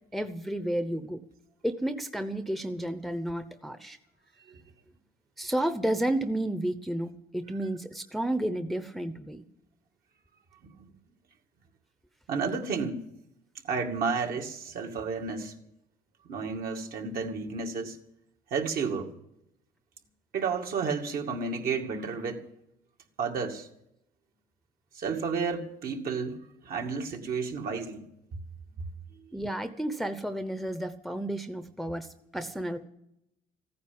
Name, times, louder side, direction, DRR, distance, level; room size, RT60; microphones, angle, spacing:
voice 1, 0.1-1.2 1.6-4.0 5.4-9.4 29.3-32.8, right 1 dB, ahead, 9 dB, 0.8 m, -31 dB
voice 2, 12.3-13.1 13.6-15.6 16.3-18.0 18.5-19.1 20.3-22.5 23.2-23.7 25.0-26.4 26.6-28.0, right 5 dB, 60° right, 2 dB, 2.3 m, -31 dB
15.0 x 9.6 x 8.8 m, 0.79 s
cardioid pair, 110°, 17 cm